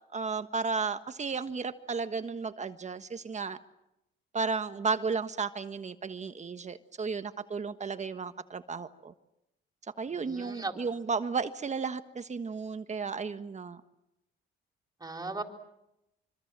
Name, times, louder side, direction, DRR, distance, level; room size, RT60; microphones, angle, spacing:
voice 1, 0.1-3.6 4.3-9.1 10.0-13.8, right 5 dB, 35° right, 10 dB, 1.5 m, -33 dB
voice 2, 10.1-10.7 15.0-15.4, right 3 dB, 20° right, 4 dB, 4.1 m, -37 dB
25.0 x 25.0 x 7.6 m, 0.87 s
cardioid pair, 90°, 20 cm